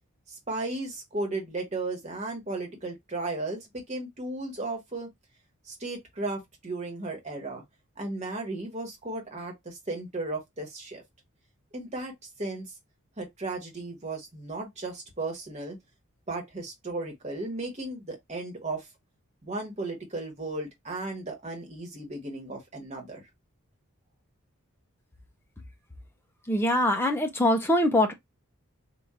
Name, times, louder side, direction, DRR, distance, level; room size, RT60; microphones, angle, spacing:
voice 1, 0.3-5.1 5.7-7.6 8.0-11.0 11.7-12.1 12.4-12.7 13.2-15.8 16.3-18.8 19.4-23.2, right 2 dB, 30° right, 1.3 m, -35 dB
voice 2, 26.4-28.1, left 1 dB, 10° left, 0.7 m, -23 dB
3.7 x 2.5 x 4.2 m
head